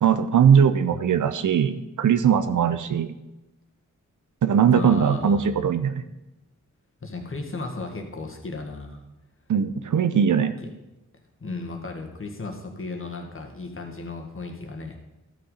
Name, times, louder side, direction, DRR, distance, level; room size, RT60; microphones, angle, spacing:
voice 1, 0.0-3.1 4.4-6.0 9.5-10.5, right 7 dB, 70° right, 11 dB, 0.7 m, -20 dB
voice 2, 4.7-5.5 7.0-9.0 11.4-15.0, left 3 dB, 40° left, 2 dB, 1.9 m, -35 dB
12.0 x 6.2 x 5.6 m, 0.95 s
cardioid pair, 60°, 32 cm